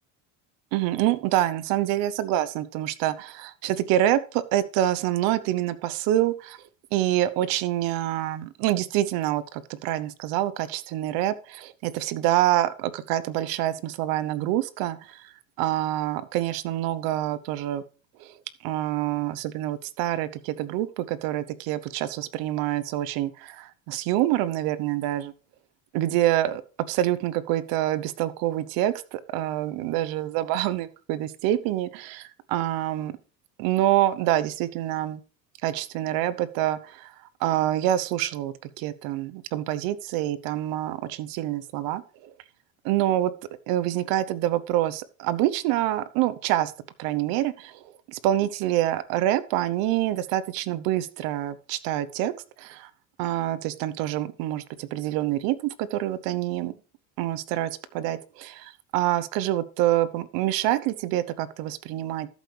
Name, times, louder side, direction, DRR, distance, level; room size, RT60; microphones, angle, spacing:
voice 1, 0.7-6.6 6.9-15.3 15.6-17.8 18.2-18.3 18.6-25.3 25.9-26.6 26.9-33.1 33.6-35.2 35.6-37.1 37.4-42.3 42.8-43.3 43.7-46.7 47.0-52.3 52.6-52.9 53.2-56.7 57.2-62.3, right 13 dB, 55° right, 17 dB, 0.9 m, -26 dB
13.5 x 7.9 x 3.3 m, 0.35 s
cardioid pair, 155°, 42 cm